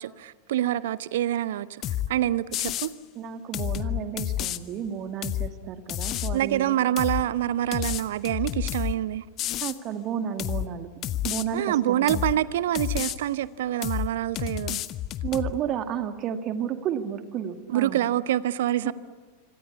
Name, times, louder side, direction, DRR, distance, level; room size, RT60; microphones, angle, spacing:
voice 1, 0.0-1.8 2.1-2.9 6.3-9.2 11.5-14.8 17.7-18.9, right 12 dB, 55° right, 0.8 m, -26 dB
sound 1, 1.8-2.1 2.5-2.9 3.5-4.6 5.2-5.5 5.9-6.4 7.0-7.2 7.7-8.9 9.4-9.8 10.4-10.7 11.0-11.4 12.1-12.4 12.7-13.2 13.8-14.1 14.4-15.5, left 13 dB, 35° left, 1.1 m, -29 dB
voice 2, 3.2-6.8 9.6-10.9 11.2-12.2 15.2-18.0 18.8-18.9, right 9 dB, 35° right, 2.0 m, -32 dB
26.0 x 25.5 x 8.5 m
figure-of-eight pair, 90°, 0 cm